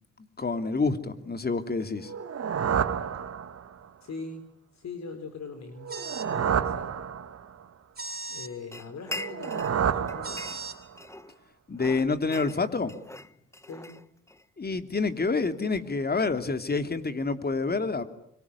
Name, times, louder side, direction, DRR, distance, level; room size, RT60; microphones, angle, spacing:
voice 1, 0.4-2.1 11.7-13.0 14.6-18.0, left 4 dB, 30° left, 9 dB, 3.0 m, -28 dB
sound 1, 2.0-3.9 5.8-7.6 9.1-10.9, right 7 dB, 50° right, 2.3 m, -30 dB
voice 2, 4.0-7.0 8.3-10.6 13.6-14.0, left 4 dB, 55° left, 8 dB, 4.2 m, -42 dB
sound 2, 5.9-6.3 8.0-8.5 10.2-10.8, right 4 dB, 30° right, 4.4 m, -38 dB
sound 3, 8.7-9.8 10.1-11.4 11.8-14.5, left 2 dB, 10° left, 1.3 m, -41 dB
25.0 x 24.0 x 9.8 m, 0.72 s
supercardioid pair, 60°, 32 cm